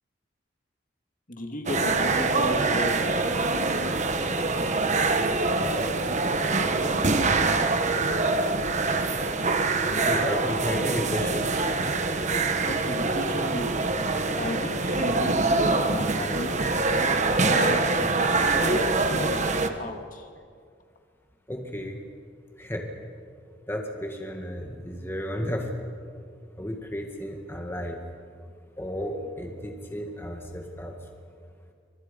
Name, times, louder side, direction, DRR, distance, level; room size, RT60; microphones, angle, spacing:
voice 1, 1.3-3.5 12.6-16.6 17.5-19.5 19.8-20.3, left 1 dB, 45° left, 3 dB, 2.5 m, -34 dB
sound 1, 1.7-19.7, right 3 dB, 40° right, 1.3 m, -24 dB
voice 2, 10.1-11.5 21.5-22.0 22.6-22.9 23.7-25.9 26.6-28.0 28.8-31.0, equal, 10° left, 2 dB, 1.9 m, -33 dB
28.5 x 25.0 x 5.4 m, 2.2 s
head